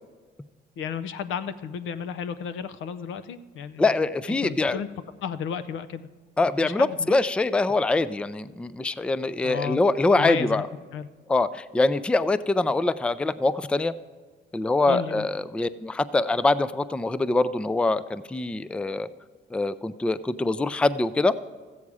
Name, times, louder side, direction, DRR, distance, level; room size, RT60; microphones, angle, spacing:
voice 1, 0.8-4.0 4.3-4.9 5.2-6.1 6.6-7.2 9.4-9.8 10.2-10.7 10.9-11.1 14.9-15.3, left 7 dB, 80° left, 13 dB, 0.6 m, -33 dB
voice 2, 3.8-4.8 6.4-10.7 11.3-13.9 14.5-19.1 19.5-21.3, left 2 dB, 5° left, 16 dB, 0.3 m, -24 dB
14.0 x 8.4 x 4.8 m, 1.5 s
cardioid pair, 90°, 20 cm